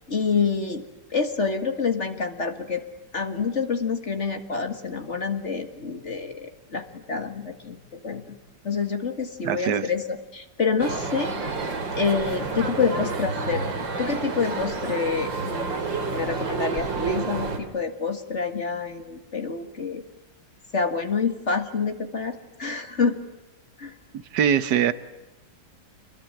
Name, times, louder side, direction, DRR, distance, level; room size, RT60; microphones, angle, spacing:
voice 1, 0.1-0.8 1.1-2.8 3.1-8.4 8.6-10.1 10.3-11.3 11.9-13.7 14.0-20.0 20.7-23.2 23.8-24.0, left 5 dB, 40° left, 7 dB, 2.0 m, -27 dB
voice 2, 9.4-9.8 24.3-24.9, right 9 dB, 70° right, 13 dB, 1.7 m, -21 dB
ambience - people busy shopping mall, 10.8-17.6, right 4 dB, 90° right, 3.4 m, -29 dB
28.0 x 22.0 x 9.0 m, 1.0 s
omnidirectional pair, 2.0 m